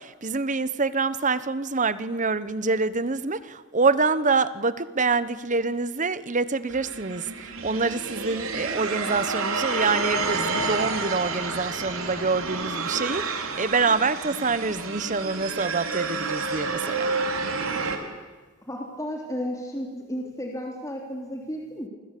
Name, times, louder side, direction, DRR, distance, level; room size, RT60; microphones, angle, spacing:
voice 1, 0.0-17.1, right 4 dB, 40° right, 15 dB, 1.1 m, -26 dB
sound 1, 6.7-18.0, right 4 dB, 90° right, 4.0 m, -29 dB
voice 2, 18.7-21.9, equal, 15° left, 0 dB, 3.5 m, -33 dB
28.5 x 24.5 x 8.5 m, 1.4 s
head